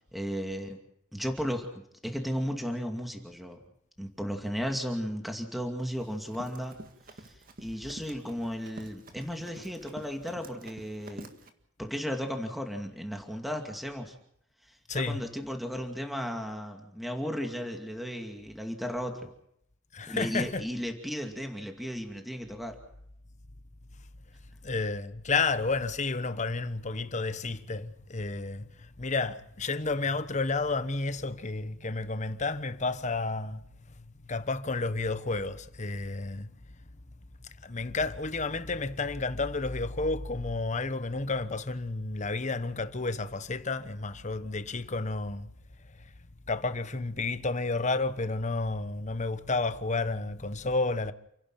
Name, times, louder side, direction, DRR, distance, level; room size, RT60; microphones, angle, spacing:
voice 1, 0.1-0.8 1.1-1.7 2.0-3.6 4.0-6.8 7.2-11.3 11.8-14.1 14.9-19.3 20.1-22.8, equal, ahead, 2.4 m, -35 dB
Run, 5.8-11.5, right 1 dB, 50° right, 1.9 m, -48 dB
voice 2, 14.9-15.2 19.9-20.6 24.6-33.6 33.9-36.5 37.6-45.5 46.0-46.1 46.5-51.1, left 3 dB, 40° left, 1.1 m, -31 dB
29.5 x 11.0 x 9.1 m
head